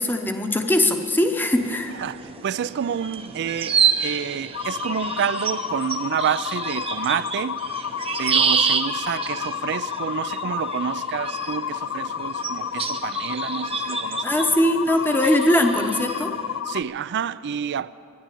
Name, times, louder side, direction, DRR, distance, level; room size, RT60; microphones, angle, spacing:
voice 1, 0.0-2.0 14.2-16.3, left 1 dB, 10° left, 0.8 m, -21 dB
sound 1, 1.5-16.6, right 6 dB, 25° right, 0.7 m, -29 dB
voice 2, 2.0-7.6 8.2-14.2 16.7-17.9, right 8 dB, 55° right, 0.3 m, -28 dB
sound 2, 4.5-16.8, left 9 dB, 60° left, 0.4 m, -31 dB
12.0 x 10.0 x 9.9 m
head